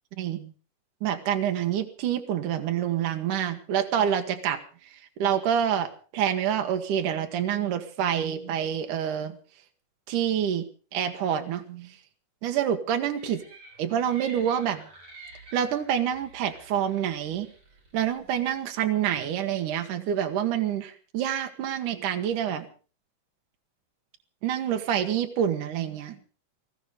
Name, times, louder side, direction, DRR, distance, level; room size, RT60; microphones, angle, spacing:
voice 1, 0.2-0.5 1.0-4.6 5.2-9.4 10.1-10.7 10.9-11.9 12.4-13.4 13.8-14.8 15.5-17.5 17.9-22.7 24.4-26.2, right 9 dB, 75° right, 6 dB, 2.9 m, -27 dB
sound 1, 13.2-18.6, right 2 dB, 50° right, 6.4 m, -50 dB
19.5 x 14.5 x 5.0 m, 0.39 s
omnidirectional pair, 3.7 m